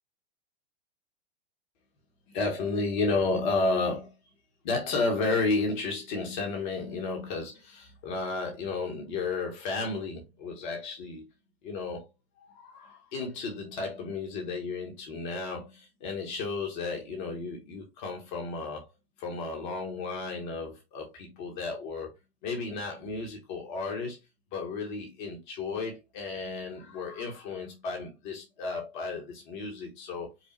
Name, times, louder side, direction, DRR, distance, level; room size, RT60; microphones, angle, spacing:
voice 1, 2.3-4.1 4.6-11.3 11.6-12.1 12.5-18.8 19.2-22.1 22.4-24.2 24.5-30.3, left 3 dB, 50° left, 1.4 m, -32 dB
5.4 x 2.2 x 3.2 m
figure-of-eight pair, 105°, 31 cm